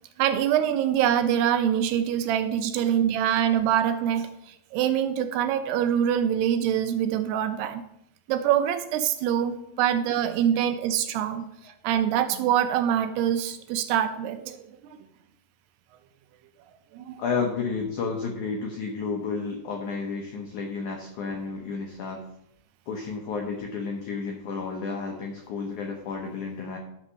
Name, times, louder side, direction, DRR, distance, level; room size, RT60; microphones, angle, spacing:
voice 1, 0.2-7.8 8.3-15.0 16.9-17.2, right 10 dB, 80° right, 9 dB, 2.6 m, -25 dB
voice 2, 17.2-22.2 22.9-26.8, left 4 dB, 85° left, 2 dB, 1.7 m, -31 dB
11.5 x 4.3 x 6.3 m, 0.79 s
omnidirectional pair, 4.9 m